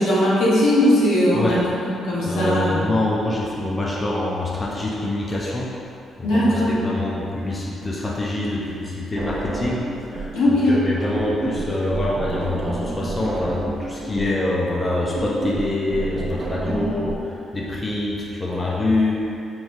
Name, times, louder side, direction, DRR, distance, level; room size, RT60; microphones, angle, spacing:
voice 1, 0.0-2.9 6.2-6.7 10.3-10.8 16.7-16.8, left 1 dB, 85° left, -8 dB, 1.1 m, -19 dB
voice 2, 2.3-5.7 6.2-9.8 10.1-19.4, left 2 dB, 25° left, -4 dB, 0.5 m, -25 dB
sound 1, 9.2-10.4 10.7-17.2, right 2 dB, 50° right, 0.5 m, -30 dB
4.8 x 3.1 x 2.6 m, 2.7 s
cardioid pair, 90°, 0 cm